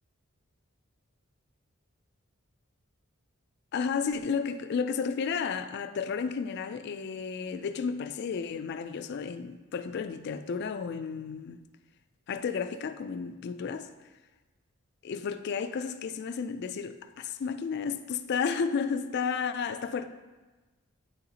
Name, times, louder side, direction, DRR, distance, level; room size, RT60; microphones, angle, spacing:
voice 1, 3.7-11.6 12.3-13.9 15.0-20.1, left 6 dB, 50° left, 0.3 m, -32 dB
8.9 x 4.0 x 2.8 m
head